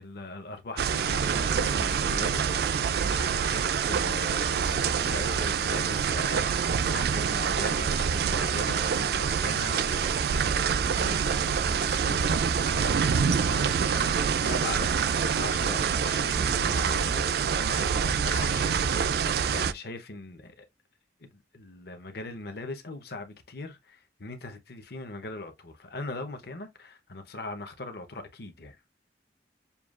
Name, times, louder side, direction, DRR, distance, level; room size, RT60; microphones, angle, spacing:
voice 1, 0.0-19.1 19.5-20.6 21.2-28.8, left 2 dB, 60° left, 0.8 m, -40 dB
sound 1, 0.8-19.7, right 6 dB, 60° right, 0.3 m, -26 dB
6.8 x 2.3 x 2.4 m
head